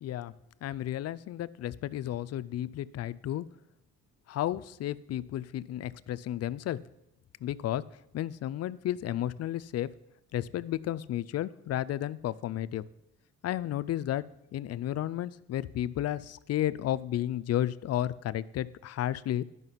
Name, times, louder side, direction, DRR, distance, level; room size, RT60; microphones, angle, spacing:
voice 1, 0.0-0.3 0.6-3.5 4.3-6.8 7.4-7.8 8.1-9.9 10.3-12.8 13.4-14.2 14.5-19.4, left 12 dB, 55° left, 17 dB, 0.4 m, -32 dB
11.0 x 5.7 x 5.6 m, 0.85 s
cardioid pair, 90°, 30 cm